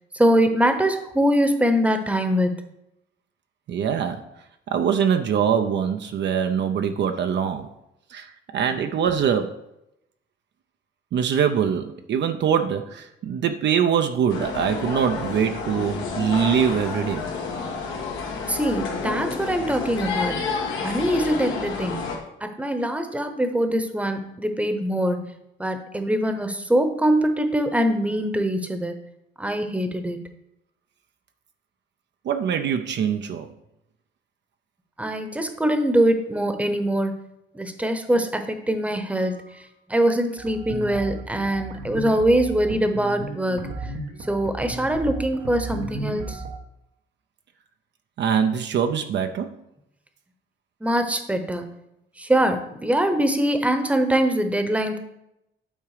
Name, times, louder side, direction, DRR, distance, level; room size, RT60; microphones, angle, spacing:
voice 1, 0.1-2.6 18.5-20.4 20.8-22.0 22.4-25.2 25.6-29.0 29.4-30.2 35.0-37.2 37.5-39.4 39.9-43.7 44.3-46.4 50.8-51.7 52.2-55.0, right 1 dB, 5° right, 7 dB, 0.9 m, -23 dB
voice 2, 3.7-4.2 4.7-7.7 8.1-9.6 11.1-17.3 32.2-33.5 48.2-49.5, right 7 dB, 65° right, 7 dB, 0.6 m, -23 dB
sound 1, 14.3-22.2, left 5 dB, 85° left, 1.4 m, -30 dB
sound 2, 40.4-46.6, right 3 dB, 90° right, 1.2 m, -34 dB
8.8 x 3.7 x 4.9 m, 0.84 s
cardioid pair, 90°, 20 cm